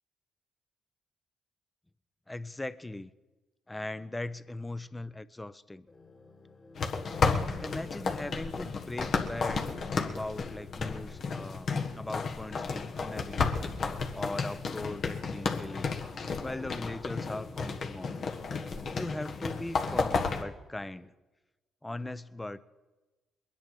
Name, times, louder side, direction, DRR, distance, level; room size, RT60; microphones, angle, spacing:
voice 1, 2.3-3.1 3.7-5.9 7.6-13.7 14.1-16.0 16.4-18.3 18.9-21.1 21.8-22.6, left 2 dB, 15° left, 14 dB, 0.8 m, -39 dB
sound 1, 5.9-21.1, left 3 dB, 35° left, 2.3 m, -55 dB
sound 2, 6.8-20.4, left 4 dB, 60° left, 1.5 m, -32 dB
22.5 x 10.0 x 4.7 m, 1.1 s
hypercardioid pair, 50°, 0 cm